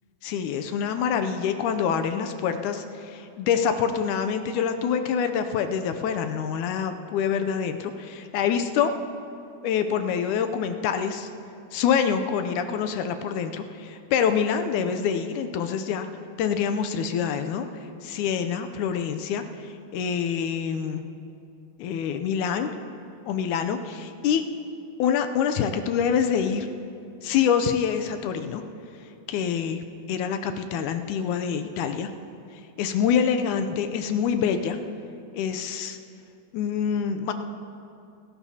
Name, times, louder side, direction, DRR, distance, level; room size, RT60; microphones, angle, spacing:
voice 1, 0.2-8.9 9.6-11.3 11.7-16.1 16.4-17.7 18.0-19.4 19.9-21.0 21.8-22.7 23.3-24.4 25.0-26.7 27.2-28.6 29.3-32.1 32.8-34.8 35.3-36.0 36.5-37.3, left 7 dB, 75° left, 8 dB, 2.0 m, -26 dB
27.0 x 13.0 x 2.8 m, 2.6 s
omnidirectional pair, 3.7 m